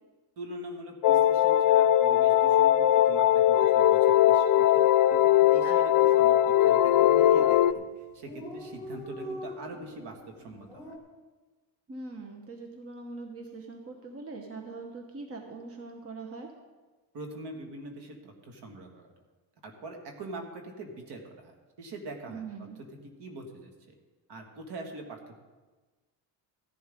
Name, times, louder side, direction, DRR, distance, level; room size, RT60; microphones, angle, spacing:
voice 1, 0.4-10.9 17.1-19.1 19.6-22.4 23.2-23.9 24.3-25.4, right 1 dB, 60° right, 2 dB, 2.3 m, -43 dB
sound 1, 1.0-7.7, left 12 dB, 45° left, 0.5 m, -20 dB
Dog, 4.7-5.0 5.3-5.4 5.6-6.3 6.9-7.2 7.5-7.6 7.8-7.9 8.0-11.0, equal, 10° right, 3.3 m, -43 dB
voice 2, 5.6-6.1 11.9-16.5 22.3-22.8, right 3 dB, 30° right, 3 dB, 1.3 m, -42 dB
16.0 x 11.0 x 3.9 m, 1.3 s
cardioid pair, 115°, 44 cm